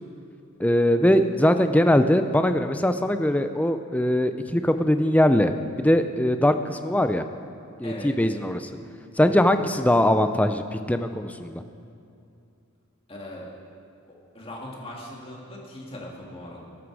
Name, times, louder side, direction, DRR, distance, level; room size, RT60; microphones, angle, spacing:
voice 1, 0.6-7.2 7.8-8.7 9.2-11.6, left 1 dB, 5° left, 8 dB, 0.5 m, -21 dB
voice 2, 7.8-8.1 9.2-9.5 13.1-13.5 14.3-16.7, left 1 dB, 25° left, -2 dB, 2.3 m, -39 dB
20.0 x 11.0 x 4.8 m, 2.6 s
head